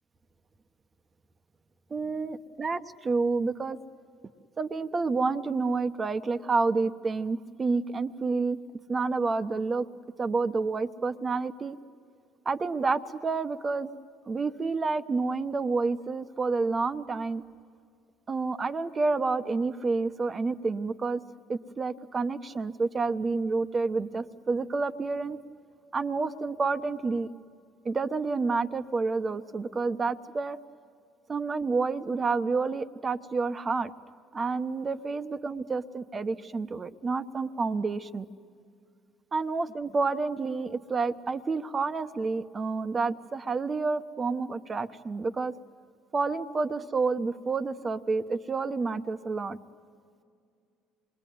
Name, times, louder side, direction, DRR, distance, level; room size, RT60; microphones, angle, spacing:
voice 1, 1.9-3.8 4.6-8.6 8.9-9.9 10.2-11.8 12.4-13.9 14.3-17.4 18.3-21.2 21.5-25.4 25.9-27.3 27.8-30.6 31.3-33.9 34.3-38.3 39.3-45.5 46.1-49.6, right 4 dB, 30° right, 10 dB, 1.0 m, -29 dB
27.0 x 21.5 x 9.4 m, 2.3 s
supercardioid pair, 90°, 0 cm